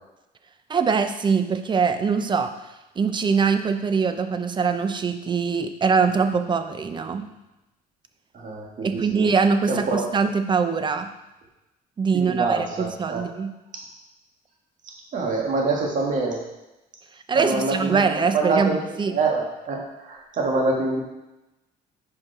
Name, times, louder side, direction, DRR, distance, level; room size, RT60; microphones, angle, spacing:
voice 1, 0.7-2.5 3.0-7.3 8.8-11.1 12.0-13.5 17.3-18.7 19.0-19.1, right 5 dB, 30° right, 9 dB, 0.6 m, -23 dB
voice 2, 8.3-9.3 9.7-10.0 12.1-13.2 15.1-16.4 17.3-18.0 18.3-18.8 19.1-21.0, right 3 dB, 50° right, -1 dB, 1.7 m, -25 dB
5.7 x 5.3 x 4.9 m, 0.97 s
cardioid pair, 110°, 17 cm